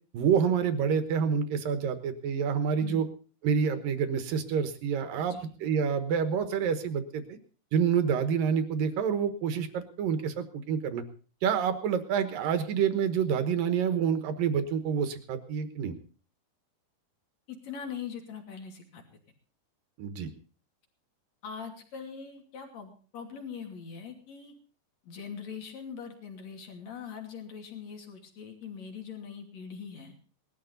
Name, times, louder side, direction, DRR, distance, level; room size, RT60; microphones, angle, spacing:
voice 1, 0.1-3.1 3.4-7.2 7.7-11.0 11.4-15.9 20.0-20.3, right 7 dB, 65° right, 9 dB, 2.5 m, -28 dB
voice 2, 17.5-19.0 21.4-24.5 25.0-30.1, left 6 dB, 45° left, 3 dB, 3.4 m, -42 dB
19.5 x 13.0 x 4.0 m, 0.39 s
omnidirectional pair, 5.1 m